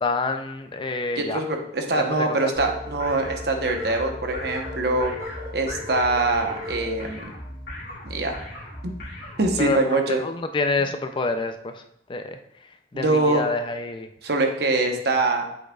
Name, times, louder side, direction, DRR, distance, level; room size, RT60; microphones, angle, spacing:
voice 1, 0.0-1.4 1.9-2.5 9.6-11.8 12.1-12.4 12.9-14.1 14.8-15.0, left 3 dB, 25° left, 8 dB, 0.4 m, -27 dB
voice 2, 1.2-5.1 5.5-7.3 8.0-8.4 8.8-8.9 9.4-10.2 12.9-13.4 14.2-15.4, right 2 dB, 60° right, 4 dB, 0.9 m, -23 dB
sound 1, 2.1-7.1, left 3 dB, 20° right, 2.7 m, -38 dB
sound 2, 2.6-9.7, left 1 dB, 55° left, 2.4 m, -37 dB
7.8 x 6.4 x 2.3 m, 0.77 s
head